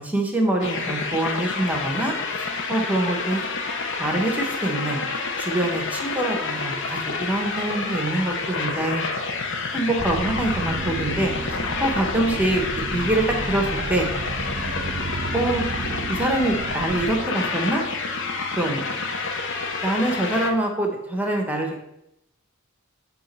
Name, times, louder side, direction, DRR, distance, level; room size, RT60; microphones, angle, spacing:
voice 1, 0.0-3.4 4.0-5.0 5.4-9.0 9.7-12.6 12.9-14.1 15.3-15.6 16.1-17.8 18.6-18.8 19.8-21.7, right 1 dB, 10° right, 1 dB, 1.0 m, -25 dB
sound 1, 0.6-20.5, left 4 dB, 60° left, 0.8 m, -29 dB
sound 2, 10.0-17.2, right 3 dB, 40° right, 0.5 m, -32 dB
8.5 x 3.0 x 5.4 m, 0.83 s
head